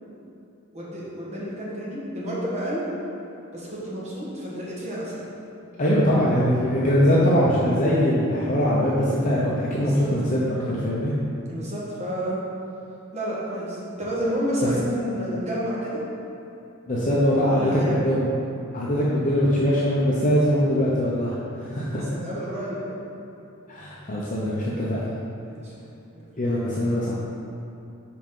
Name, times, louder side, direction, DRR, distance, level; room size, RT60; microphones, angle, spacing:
voice 1, 0.7-2.9 3.5-5.2 9.8-10.1 11.5-12.4 13.1-16.1 17.3-18.1 21.7-23.0 25.4-25.7 26.1-26.3, equal, 30° right, -6 dB, 1.6 m, -30 dB
voice 2, 5.8-11.1 16.9-17.6 17.9-18.3 18.7-22.0 23.7-25.2 26.4-27.1, equal, 35° left, -6 dB, 0.8 m, -22 dB
5.8 x 5.1 x 5.4 m, 2.8 s
head